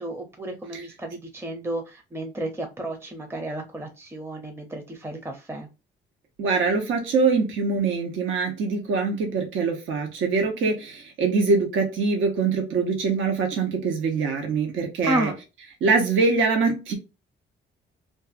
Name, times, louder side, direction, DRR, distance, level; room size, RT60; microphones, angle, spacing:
voice 1, 0.0-5.7 15.0-15.4, right 1 dB, 10° right, 0.6 m, -32 dB
voice 2, 6.4-15.3 15.8-16.9, right 4 dB, 80° right, 0.9 m, -23 dB
2.5 x 2.4 x 2.4 m
cardioid pair, 90°, 20 cm